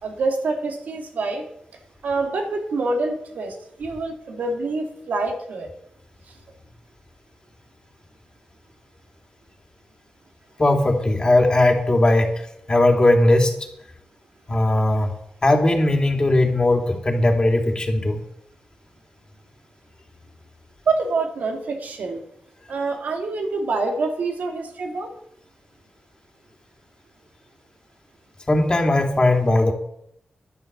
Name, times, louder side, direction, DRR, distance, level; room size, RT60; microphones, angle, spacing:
voice 1, 0.0-1.4 2.0-5.7 6.3-6.4 20.9-22.2 22.7-25.1, right 3 dB, 85° right, 3 dB, 2.6 m, -26 dB
voice 2, 10.6-12.4 12.7-13.5 14.5-15.1 15.4-18.2 28.5-29.7, left 1 dB, 30° left, 3 dB, 2.9 m, -18 dB
11.0 x 10.5 x 6.9 m, 0.73 s
cardioid pair, 80°, 3 cm